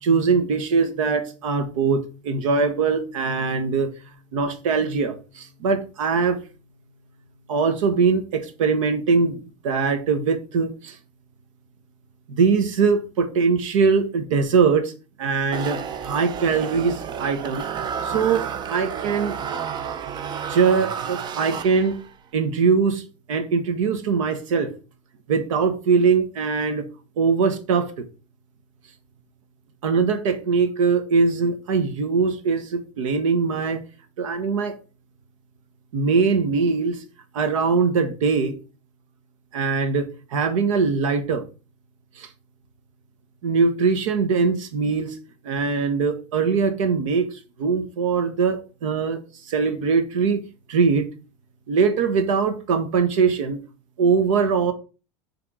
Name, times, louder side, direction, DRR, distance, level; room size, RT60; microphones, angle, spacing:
voice 1, 0.0-3.9 4.3-6.4 7.5-9.4 9.6-11.0 12.3-14.9 15.2-17.6 18.0-19.4 20.5-22.0 22.3-23.0 23.3-24.7 25.3-26.9 27.2-27.9 29.8-33.8 34.2-34.8 35.9-37.0 37.3-38.6 39.5-41.4 42.2-42.3 43.4-45.2 45.4-49.2 49.5-50.4 50.7-51.1 51.7-53.6 54.0-54.7, right 5 dB, 85° right, 1.2 m, -22 dB
sound 1, 15.5-22.1, right 7 dB, 25° right, 0.5 m, -31 dB
6.2 x 3.5 x 4.7 m
supercardioid pair, 135°, 16 cm